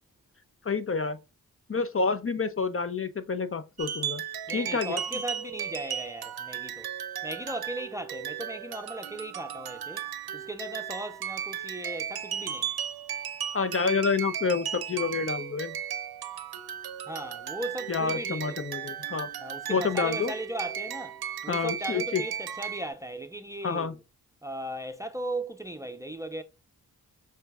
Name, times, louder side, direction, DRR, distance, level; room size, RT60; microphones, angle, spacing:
voice 1, 0.6-1.2 1.7-4.2 4.5-5.0 13.5-15.8 17.9-19.3 19.7-20.3 21.5-22.2 23.6-24.0, left 5 dB, 35° left, 0.6 m, -28 dB
sound 1, 3.8-22.9, right 9 dB, 75° right, 0.7 m, -36 dB
voice 2, 4.5-6.9 7.2-12.7 17.1-18.6 19.4-21.2 21.4-24.0 24.4-26.4, right 1 dB, 10° right, 0.6 m, -37 dB
6.5 x 2.7 x 2.3 m
cardioid pair, 50°, 38 cm